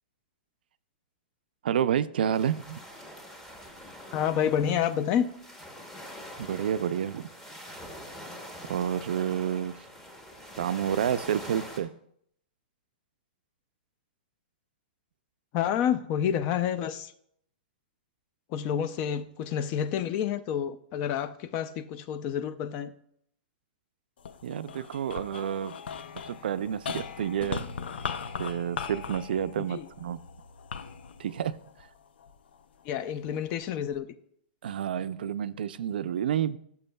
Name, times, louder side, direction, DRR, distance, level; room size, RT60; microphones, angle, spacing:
voice 1, 1.6-2.8 6.4-7.3 8.7-9.8 10.6-11.9 24.4-25.7 26.2-27.7 28.4-30.2 31.2-31.6 34.6-36.6, right 9 dB, 70° right, 0.4 m, -29 dB
sound 1, 2.3-11.8, equal, 5° left, 0.9 m, -44 dB
voice 2, 4.1-5.3 15.5-17.1 18.5-22.9 29.7-29.9 32.8-34.1, left 9 dB, 25° left, 0.4 m, -29 dB
sound 2, 24.2-32.6 33.2-34.0, left 6 dB, 80° left, 0.5 m, -39 dB
14.0 x 6.9 x 2.2 m
hypercardioid pair, 170°, 5 cm